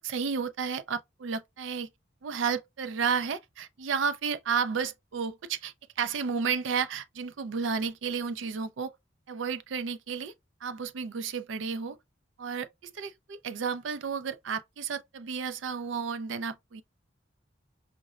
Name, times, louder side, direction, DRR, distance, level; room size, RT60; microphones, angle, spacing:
voice 1, 0.0-1.9 2.2-8.9 9.3-10.3 10.6-12.0 12.4-16.8, right 6 dB, 85° right, 0.4 m, -32 dB
5.1 x 2.0 x 2.3 m
head